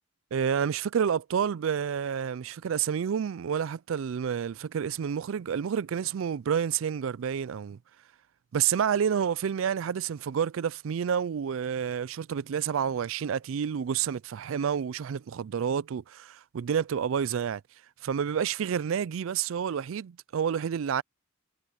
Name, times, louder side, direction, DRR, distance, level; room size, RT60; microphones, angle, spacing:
voice 1, 0.3-7.8 8.5-17.6 18.0-21.0, right 7 dB, 70° right, 0.4 m, -29 dB
head